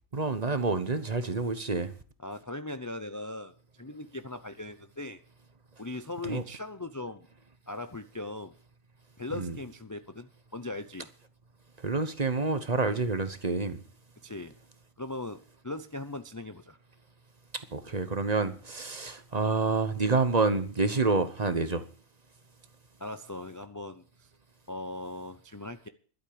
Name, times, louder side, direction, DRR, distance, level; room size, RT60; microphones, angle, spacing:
voice 1, 0.1-1.9 6.2-6.4 9.4-9.5 11.8-13.8 17.7-21.8, right 3 dB, 35° right, 1.0 m, -28 dB
voice 2, 2.2-5.2 5.8-7.3 7.7-8.5 9.2-11.1 14.2-14.5 15.0-16.8 23.0-24.3 24.7-25.9, left 2 dB, 25° left, 0.4 m, -39 dB
12.0 x 8.3 x 8.7 m
omnidirectional pair, 1.4 m